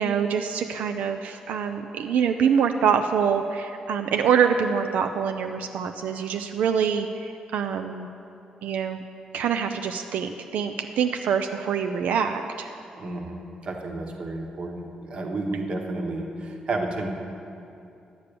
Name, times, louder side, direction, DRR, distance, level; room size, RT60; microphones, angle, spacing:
voice 1, 0.0-8.1 8.6-9.0 9.3-12.7, right 7 dB, 90° right, 6 dB, 0.5 m, -25 dB
voice 2, 13.0-17.1, right 2 dB, 40° right, 2 dB, 1.2 m, -31 dB
11.0 x 8.2 x 6.9 m, 2.7 s
wide cardioid pair, 165°, 3 cm